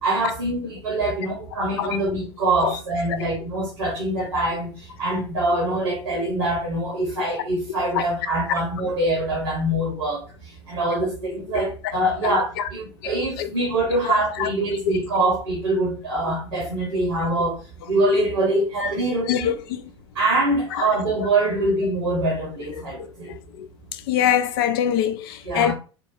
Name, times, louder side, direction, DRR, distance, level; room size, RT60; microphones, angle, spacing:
voice 1, 0.0-17.6 17.8-19.5 20.1-23.3 25.4-25.7, right 2 dB, 80° right, 1.3 m, -24 dB
voice 2, 19.3-19.8 24.1-25.7, left 10 dB, 55° left, 0.5 m, -22 dB
4.4 x 2.3 x 2.7 m
figure-of-eight pair, 80°, 14 cm